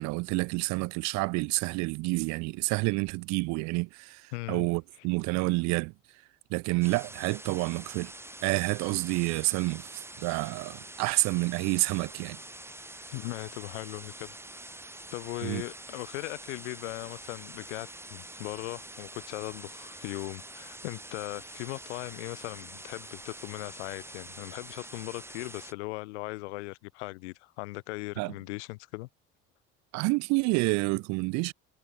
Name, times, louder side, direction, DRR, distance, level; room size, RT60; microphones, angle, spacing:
voice 1, 0.0-5.9 6.5-8.1 8.4-12.4 15.4-15.6 28.2-28.3 29.9-31.5, right 26 dB, 50° right, 0.5 m, -29 dB
voice 2, 4.3-4.7 13.1-14.3 15.1-29.1, left 23 dB, 70° left, 0.6 m, -39 dB
sound 1, 6.8-25.7, right 1 dB, 5° right, 2.3 m, -46 dB
figure-of-eight pair, 55°, 36 cm